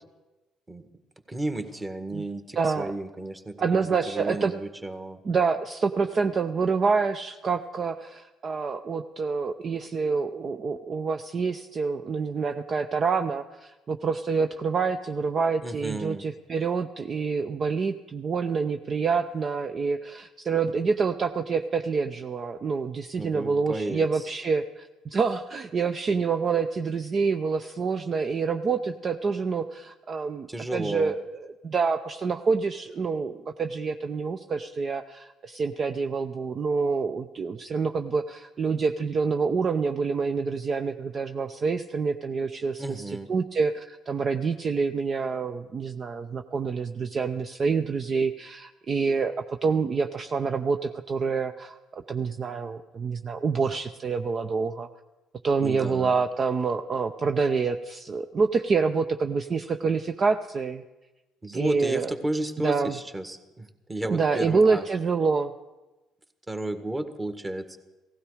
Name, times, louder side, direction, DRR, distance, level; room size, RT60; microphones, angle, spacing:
voice 1, 1.3-3.8 4.1-5.2 15.6-16.3 23.2-24.3 30.5-31.1 42.8-43.3 55.6-56.2 61.4-64.8 66.5-67.8, right 1 dB, 20° right, 7 dB, 1.8 m, -33 dB
voice 2, 2.6-2.9 3.6-4.5 5.2-31.4 31.6-43.0 43.3-54.9 55.4-60.8 61.5-62.1 62.6-62.9 64.0-65.5, right 5 dB, 45° right, 7 dB, 0.7 m, -27 dB
17.0 x 15.5 x 5.0 m, 1.1 s
hypercardioid pair, 55°, 0 cm